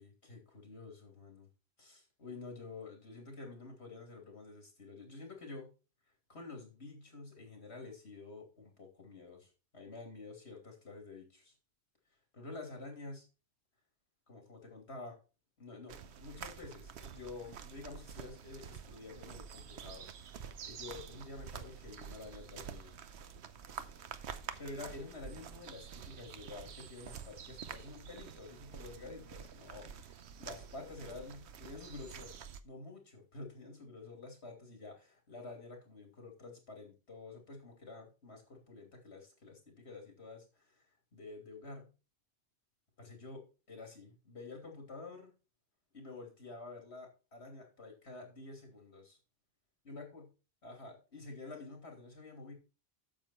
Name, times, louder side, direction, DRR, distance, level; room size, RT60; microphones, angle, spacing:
voice 1, 0.0-1.5 1.8-5.7 6.3-11.5 12.3-13.3 14.3-15.2 15.6-20.1 20.6-22.9 24.6-32.3 32.6-40.8 41.1-41.9 43.0-45.3 45.9-49.2 49.8-50.2 50.6-52.5, left 3 dB, 80° left, 2 dB, 3.2 m, -49 dB
sound 1, 15.9-32.6, right 7 dB, 80° right, 1.0 m, -48 dB
8.7 x 7.1 x 4.4 m, 0.32 s
omnidirectional pair, 1.1 m